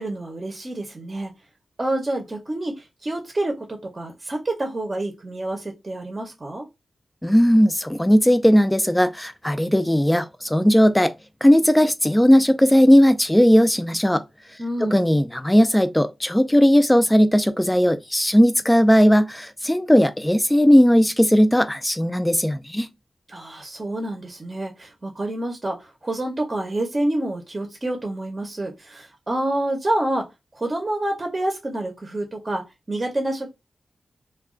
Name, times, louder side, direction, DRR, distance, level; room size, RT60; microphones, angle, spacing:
voice 1, 0.0-1.3 1.8-6.6 14.6-15.0 23.3-33.5, right 1 dB, 35° right, 0.7 m, -28 dB
voice 2, 7.2-11.1 11.4-14.2 14.8-22.9, equal, 10° left, 0.4 m, -17 dB
2.3 x 2.3 x 3.6 m
wide cardioid pair, 90°, 0 cm